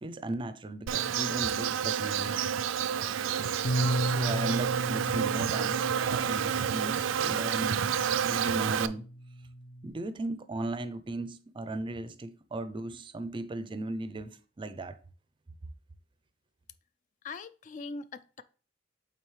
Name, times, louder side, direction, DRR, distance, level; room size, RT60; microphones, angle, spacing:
voice 1, 0.0-2.4 4.0-5.8 6.1-7.8 8.2-9.1 9.8-15.0, right 2 dB, 25° right, 0.5 m, -36 dB
Insect, 0.9-8.9, right 8 dB, 85° right, 0.4 m, -29 dB
Bass guitar, 3.6-9.9, right 1 dB, 90° left, 0.8 m, -35 dB
voice 2, 17.2-18.4, left 3 dB, 40° left, 0.3 m, -41 dB
8.6 x 3.9 x 3.2 m
head